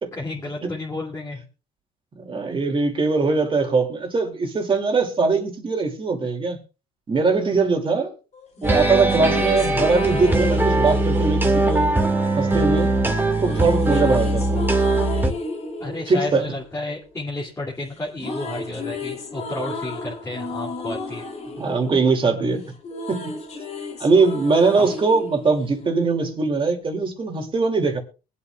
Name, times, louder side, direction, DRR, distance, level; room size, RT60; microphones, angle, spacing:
voice 1, 0.1-1.4 9.6-9.9 15.8-21.3 24.7-24.9, left 2 dB, 15° left, 2.5 m, -32 dB
voice 2, 2.2-6.6 7.1-8.1 8.6-11.9 12.4-13.0 13.4-14.7 16.1-16.5 21.6-22.7 23.1-23.2 24.0-28.0, right 4 dB, 30° right, 2.5 m, -21 dB
sound 1, 8.3-12.5 13.3-17.6 17.9-26.4, left 2 dB, 40° left, 2.8 m, -34 dB
sound 2, 8.6-15.3, right 2 dB, 10° right, 1.8 m, -21 dB
23.0 x 8.4 x 2.3 m
cardioid pair, 110°, 17 cm